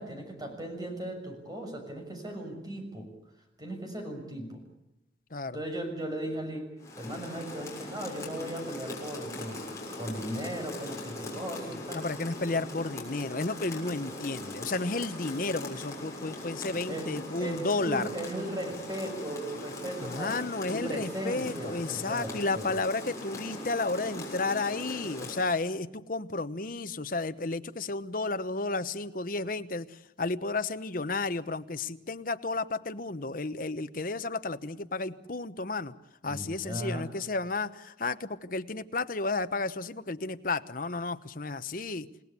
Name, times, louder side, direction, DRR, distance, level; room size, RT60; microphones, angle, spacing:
voice 1, 0.0-3.1 3.6-4.6 5.5-6.7 7.0-9.6 10.0-12.0 16.9-17.1 17.4-22.7 36.3-37.1, right 1 dB, 20° right, 4 dB, 6.4 m, -37 dB
Rain, 6.8-25.5, left 2 dB, 15° left, 6.7 m, -40 dB
voice 2, 11.9-18.1 20.0-35.9 36.2-42.1, left 3 dB, 50° left, 11 dB, 1.0 m, -32 dB
29.0 x 18.5 x 8.3 m, 0.90 s
head